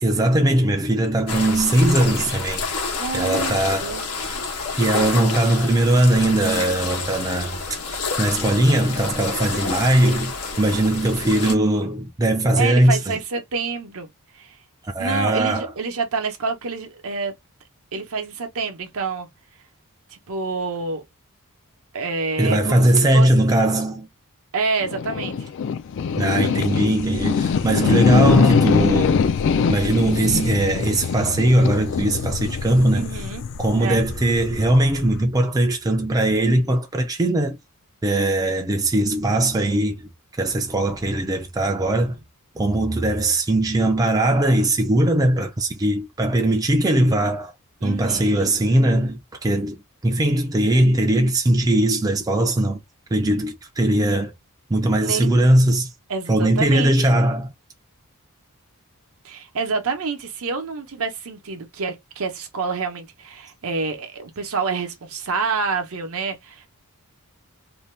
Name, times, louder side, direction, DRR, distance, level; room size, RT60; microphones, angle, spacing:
voice 1, 0.0-2.7 3.1-4.0 4.8-7.6 8.2-13.1 14.9-15.7 22.4-24.1 26.2-29.3 29.7-33.1 33.6-37.6 38.0-40.1 40.4-42.2 42.6-47.5 47.8-49.8 50.0-52.8 53.1-54.3 54.7-55.9 56.3-57.5, right 1 dB, 15° right, 0.4 m, -20 dB
sound 1, 1.3-11.5, left 4 dB, 75° left, 1.0 m, -29 dB
voice 2, 2.9-4.1 11.4-11.6 12.6-14.1 14.3-14.6 15.0-17.3 17.9-19.3 20.1-21.0 21.9-23.3 24.5-25.5 32.9-33.4 33.8-34.0 47.8-48.5 55.0-55.3 56.1-57.1 59.2-66.7, right 4 dB, 65° right, 0.8 m, -28 dB
sound 2, 24.8-35.2, left 6 dB, 55° left, 0.3 m, -22 dB
2.7 x 2.2 x 3.1 m
head